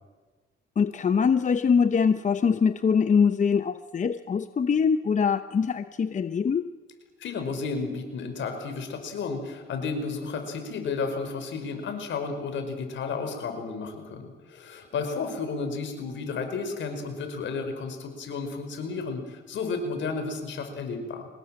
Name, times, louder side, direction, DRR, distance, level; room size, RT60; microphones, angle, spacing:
voice 1, 0.8-6.7, left 6 dB, 40° left, 11 dB, 0.8 m, -23 dB
voice 2, 7.2-21.3, left 4 dB, 70° left, 6 dB, 5.1 m, -32 dB
24.5 x 19.5 x 7.7 m, 1.4 s
cardioid pair, 90°, 20 cm